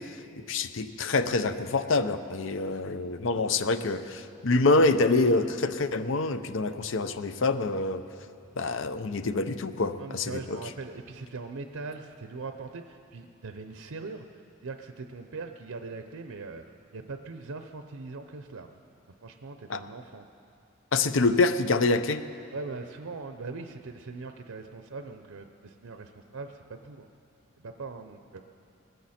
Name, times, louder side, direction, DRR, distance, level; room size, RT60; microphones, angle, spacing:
voice 1, 0.0-8.0 8.6-10.6 19.7-19.8 20.9-22.2, left 3 dB, 65° left, 11 dB, 0.6 m, -26 dB
voice 2, 10.0-16.6 16.9-18.8 19.2-20.2 22.5-27.1 27.6-28.4, right 3 dB, 85° right, 7 dB, 0.7 m, -41 dB
20.0 x 15.0 x 4.3 m, 2.5 s
head